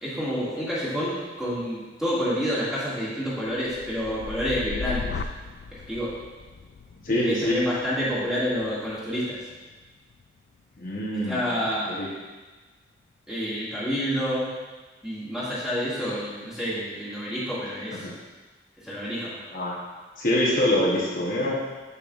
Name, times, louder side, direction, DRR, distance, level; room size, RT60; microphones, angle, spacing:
voice 1, 0.0-5.1 5.7-6.1 7.2-9.4 11.2-12.0 13.3-14.5 15.0-18.1 18.8-19.4, equal, 5° right, -11 dB, 2.0 m, -28 dB
sound 1, 3.6-11.5 12.0-12.4, left 5 dB, 70° left, 0.3 m, -39 dB
voice 2, 7.0-7.6 10.8-11.4 11.9-12.1 17.9-18.1 19.5-19.8 20.2-21.5, left 1 dB, 50° left, -4 dB, 0.9 m, -25 dB
6.9 x 6.9 x 2.4 m, 1.3 s
head